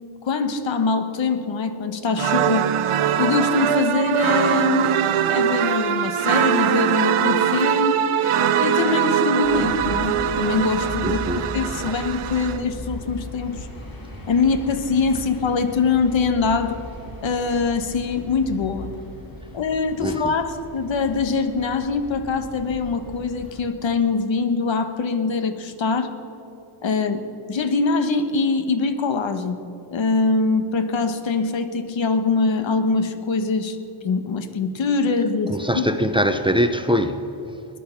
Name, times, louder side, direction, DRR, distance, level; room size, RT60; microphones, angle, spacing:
voice 1, 0.2-2.7 3.2-5.0 5.3-8.1 8.6-13.7 14.3-16.8 17.2-18.9 19.5-26.2 26.8-27.2 27.5-29.6 29.9-33.8 34.0-35.8, left 4 dB, 65° left, 9 dB, 1.3 m, -23 dB
sound 1, 2.2-12.6, right 9 dB, 85° right, 0.9 m, -22 dB
sound 2, 9.4-23.6, left 1 dB, 45° left, 2.4 m, -37 dB
voice 2, 11.0-11.4 11.9-12.0 20.0-20.3 35.5-37.2, equal, 10° right, 8 dB, 0.6 m, -22 dB
20.5 x 10.5 x 5.8 m, 3.0 s
wide cardioid pair, 130°, 49 cm